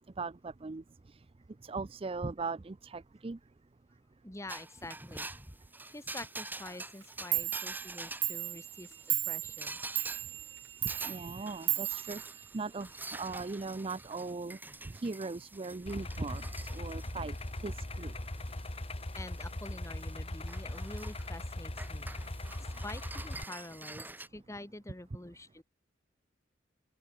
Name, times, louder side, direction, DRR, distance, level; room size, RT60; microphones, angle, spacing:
voice 1, 0.2-1.2 1.6-3.4 10.8-14.6 14.9-17.4 17.6-18.1, right 3 dB, 30° right, 0.5 m, -39 dB
voice 2, 4.2-5.3 5.8-9.8 19.1-25.6, left 2 dB, 15° left, 1.7 m, -47 dB
sound 1, 4.5-24.3, right 2 dB, 10° right, 4.3 m, -47 dB
Clock, 7.0-7.1 7.3-13.0, right 16 dB, 85° right, 3.2 m, -36 dB
Idling, 15.9-23.4, left 1 dB, 35° left, 1.5 m, -40 dB
open air
head